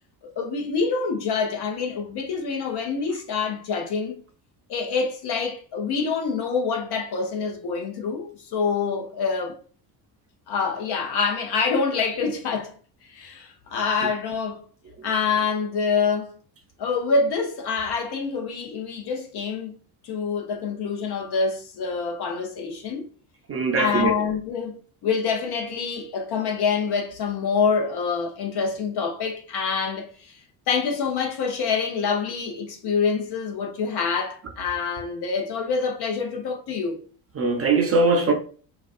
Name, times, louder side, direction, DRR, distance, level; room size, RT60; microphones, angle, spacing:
voice 1, 0.4-4.2 4.7-9.6 10.5-12.7 13.1-14.6 15.0-16.3 16.8-19.7 20.0-23.1 23.8-24.7 25.0-30.4 30.7-37.0, left 5 dB, 50° left, 0.8 m, -26 dB
voice 2, 23.5-24.1 37.4-38.3, right 3 dB, 30° right, 0.5 m, -21 dB
2.4 x 2.3 x 2.4 m
hypercardioid pair, 60°, 49 cm